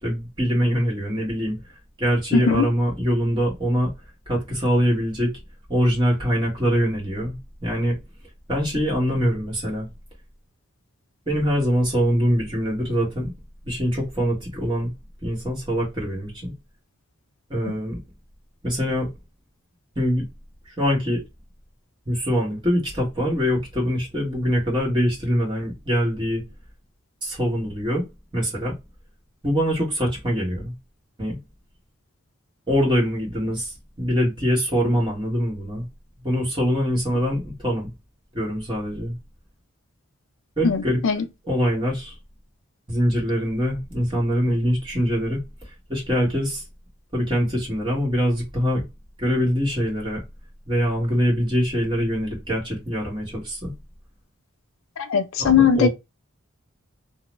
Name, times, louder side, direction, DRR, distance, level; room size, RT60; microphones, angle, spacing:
voice 1, 0.0-1.6 2.0-3.9 4.3-5.3 5.7-8.0 8.5-9.9 11.3-13.3 13.6-14.9 15.2-16.5 17.5-18.0 18.6-19.1 19.9-20.2 20.8-21.2 22.1-26.4 27.2-28.0 28.3-28.7 29.4-30.7 31.2-31.4 32.7-35.9 36.2-37.9 38.3-39.2 40.6-41.0 41.5-42.1 42.9-45.4 45.9-46.6 47.1-48.8 49.2-50.2 50.7-53.7 55.4-55.9, equal, 20° right, 1.3 m, -23 dB
voice 2, 2.3-2.6 17.7-17.8 40.6-41.2 55.0-55.9, left 7 dB, 70° left, 0.4 m, -19 dB
2.9 x 2.0 x 3.2 m
head